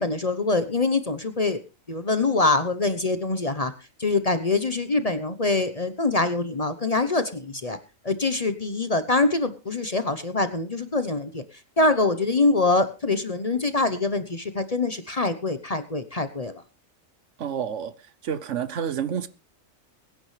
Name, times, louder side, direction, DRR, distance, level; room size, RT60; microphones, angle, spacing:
voice 1, 0.0-1.6 1.9-3.7 4.0-7.8 8.0-11.4 11.8-16.6, left 3 dB, 35° left, 0.9 m, -24 dB
voice 2, 17.4-17.9 18.2-19.3, right 8 dB, 65° right, 1.2 m, -29 dB
22.5 x 9.9 x 3.3 m
omnidirectional pair, 1.4 m